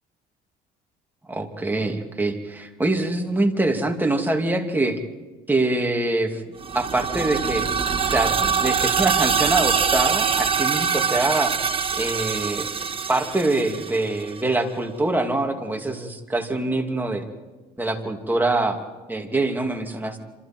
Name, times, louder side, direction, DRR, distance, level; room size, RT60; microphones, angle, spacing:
voice 1, 1.3-5.0 5.5-6.4 6.7-7.7 8.0-11.5 12.0-12.7 13.1-17.2 17.8-18.8 19.1-20.2, right 2 dB, 10° right, 2 dB, 2.7 m, -24 dB
sound 1, 6.6-14.4, right 6 dB, 30° right, 1.2 m, -24 dB
28.0 x 26.5 x 4.6 m, 1.2 s
cardioid pair, 110°, 17 cm